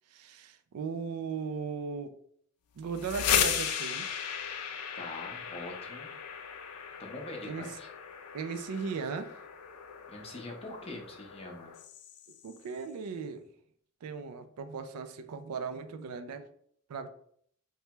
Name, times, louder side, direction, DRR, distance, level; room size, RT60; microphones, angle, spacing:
voice 1, 0.1-2.1 2.8-4.2 7.4-7.7 8.3-9.4 12.4-13.5 14.0-16.5 16.9-17.1, right 5 dB, 85° right, 9 dB, 0.3 m, -37 dB
sound 1, 2.8-12.6, left 8 dB, 75° left, 0.4 m, -36 dB
voice 2, 4.9-6.1 7.0-7.9 10.1-11.7, left 2 dB, 25° left, 1 dB, 0.6 m, -43 dB
3.2 x 2.2 x 2.9 m, 0.63 s
head